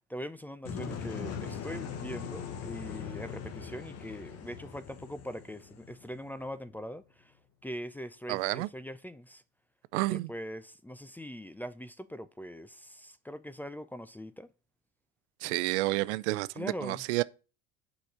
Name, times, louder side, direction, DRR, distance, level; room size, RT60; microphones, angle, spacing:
voice 1, 0.1-7.3 7.6-9.4 10.1-14.5 16.5-17.0, equal, 5° left, 0.4 m, -42 dB
sound 1, 0.7-6.5, left 6 dB, 45° left, 1.4 m, -40 dB
voice 2, 8.3-8.7 9.9-10.3 15.4-17.2, right 20 dB, 80° right, 0.5 m, -30 dB
6.8 x 5.0 x 5.8 m
supercardioid pair, 105°, 34 cm